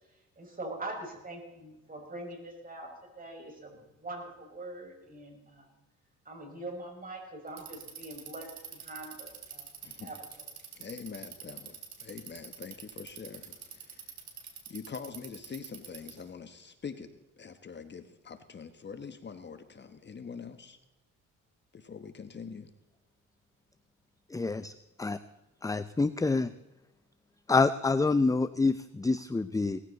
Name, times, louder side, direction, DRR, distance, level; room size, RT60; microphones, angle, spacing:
voice 1, 0.4-5.7 6.3-9.7 10.0-10.2, right 2 dB, 30° right, 2 dB, 5.7 m, -43 dB
Bicycle, 7.5-16.3, right 7 dB, 65° right, 3.3 m, -46 dB
voice 2, 10.7-14.1 14.7-17.1 17.4-20.8 21.7-22.7, left 6 dB, 35° left, 9 dB, 1.3 m, -44 dB
voice 3, 24.3-24.7 25.0-25.2 25.6-26.5 27.5-29.8, left 3 dB, 10° left, 13 dB, 0.6 m, -27 dB
18.5 x 15.0 x 4.0 m, 1.0 s
cardioid pair, 90°, 30 cm